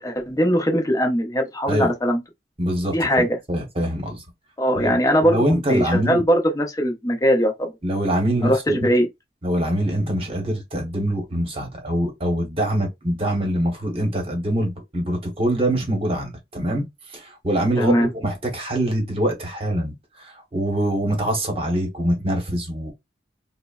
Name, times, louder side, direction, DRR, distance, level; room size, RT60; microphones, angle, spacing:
voice 1, 0.0-2.2 2.9-3.3 4.6-7.7 8.4-9.1 17.8-18.1, equal, 20° left, 0.6 m, -20 dB
voice 2, 2.6-4.2 4.7-5.0 5.2-6.2 7.8-8.9 9.4-22.9, right 1 dB, 35° right, 0.9 m, -24 dB
3.2 x 2.0 x 2.3 m
head